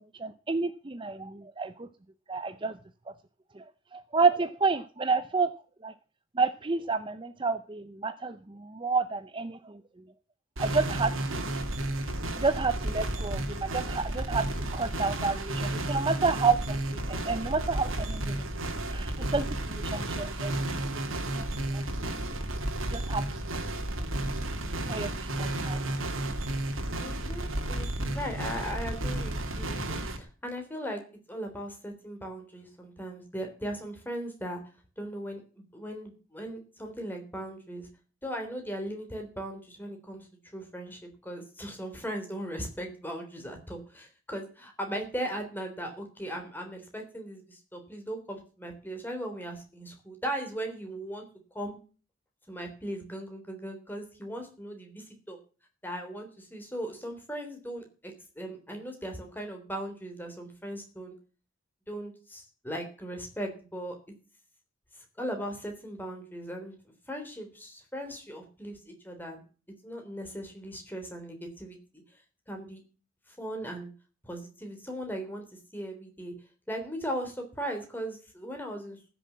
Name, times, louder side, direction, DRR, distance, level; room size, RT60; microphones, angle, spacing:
voice 1, 0.2-1.9 2.3-2.7 3.6-3.7 3.9-5.5 5.8-5.9 6.4-9.8 10.6-11.4 12.4-14.5 14.7-16.8 17.1-20.5 21.3-21.5 21.7-21.8 22.9-23.3 24.9-25.9, right 4 dB, 25° right, 11 dB, 0.6 m, -30 dB
sound 1, 10.6-30.2, right 1 dB, 75° right, 2.4 m, -32 dB
voice 2, 27.0-31.0 31.3-34.6 35.0-35.4 35.7-37.9 38.2-40.3 40.5-51.3 51.5-51.8 52.5-55.4 55.8-61.2 61.9-64.0 65.0-66.8 67.1-69.4 69.8-72.0 72.5-72.8 73.3-73.9 74.2-75.4 75.7-76.3 76.7-79.0, equal, 10° left, 3 dB, 3.5 m, -38 dB
15.0 x 7.1 x 7.3 m, 0.37 s
head